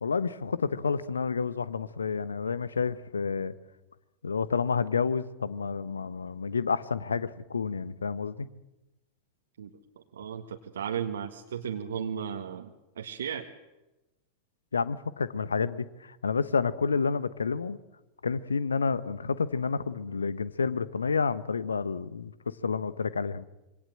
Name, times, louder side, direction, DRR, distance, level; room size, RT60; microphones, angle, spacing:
voice 1, 0.0-3.5 4.2-8.5 14.7-17.8 18.2-22.3 22.6-23.4, left 5 dB, 75° left, 16 dB, 1.2 m, -29 dB
voice 2, 10.1-13.5, right 8 dB, 65° right, 4 dB, 1.7 m, -35 dB
26.5 x 25.0 x 7.7 m, 1.0 s
figure-of-eight pair, 90°, 0 cm